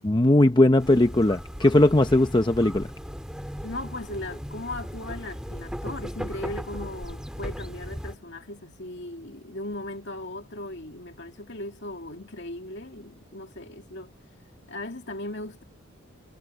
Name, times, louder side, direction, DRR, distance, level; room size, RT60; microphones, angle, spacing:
voice 1, 0.0-2.9, left 1 dB, 20° left, 0.7 m, -19 dB
sound 1, 0.8-8.2, equal, 5° right, 2.0 m, -37 dB
voice 2, 3.6-14.1 14.7-15.6, left 1 dB, 55° left, 2.4 m, -37 dB
head